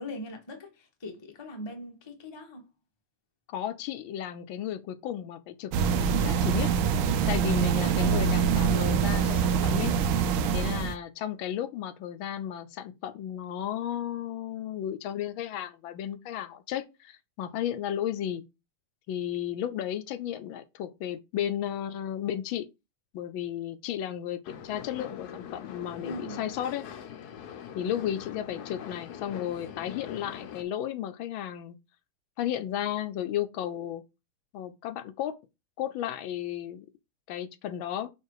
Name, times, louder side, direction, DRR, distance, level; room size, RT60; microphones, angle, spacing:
voice 1, 0.0-2.7 7.8-8.6 26.0-26.5, equal, 20° left, 0.7 m, -41 dB
voice 2, 3.5-6.7 7.3-9.9 10.5-18.4 19.1-22.7 23.1-26.8 27.7-31.8 32.4-34.0 34.5-35.4 35.8-36.8 37.3-38.1, left 10 dB, 80° left, 1.4 m, -34 dB
sound 1, 5.7-10.9, right 7 dB, 90° right, 1.5 m, -25 dB
sound 2, 24.4-30.6, left 9 dB, 65° left, 1.1 m, -43 dB
5.7 x 3.7 x 4.7 m
omnidirectional pair, 2.2 m